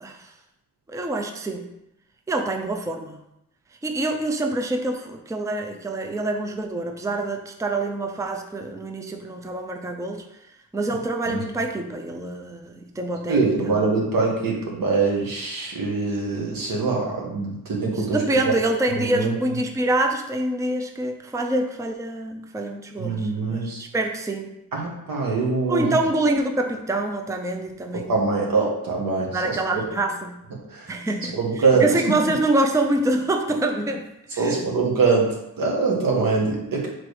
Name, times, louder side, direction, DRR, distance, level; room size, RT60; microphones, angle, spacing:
voice 1, 0.0-0.3 0.9-1.7 2.3-3.2 3.8-10.2 10.7-13.7 17.9-24.5 25.7-28.2 29.3-30.4 30.9-34.1 34.3-34.6, right 2 dB, 10° right, 3 dB, 0.5 m, -26 dB
voice 2, 13.3-18.2 18.9-19.3 23.0-23.8 24.7-25.9 27.9-29.8 30.7-30.9 31.3-32.1 34.4-36.9, right 4 dB, 85° right, -2 dB, 1.6 m, -23 dB
4.6 x 4.2 x 4.8 m, 0.85 s
wide cardioid pair, 120°, 33 cm